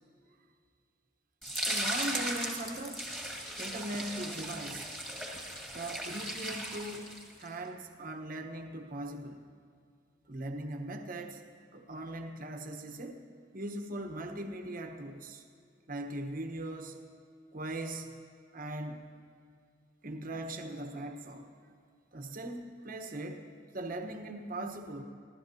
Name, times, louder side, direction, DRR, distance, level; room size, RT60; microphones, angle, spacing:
sound 1, 1.4-7.5, equal, ahead, 1.9 m, -37 dB
voice 1, 1.6-3.0 3.6-4.9 5.7-9.4 10.3-11.4 11.7-13.2 13.5-15.4 15.9-17.0 17.5-18.1 18.5-19.0 20.0-21.5 22.1-23.5 23.7-25.0, right 1 dB, 50° right, 4 dB, 1.2 m, -40 dB
24.0 x 15.5 x 2.9 m, 2.3 s
head